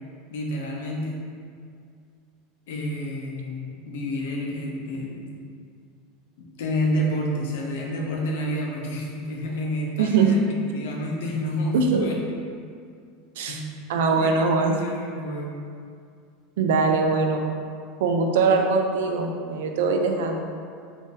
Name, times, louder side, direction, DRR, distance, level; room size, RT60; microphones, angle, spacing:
voice 1, 0.3-1.2 2.7-5.3 6.4-12.2 13.5-13.6 14.2-14.3 14.6-15.5, equal, 80° left, -1 dB, 0.6 m, -29 dB
voice 2, 10.0-10.3 11.7-12.1 13.4-13.6 13.9-14.8 16.6-17.4 18.0-20.5, right 4 dB, 85° right, 3 dB, 0.3 m, -22 dB
2.6 x 2.5 x 3.8 m, 2.3 s
supercardioid pair, 165°, 0 cm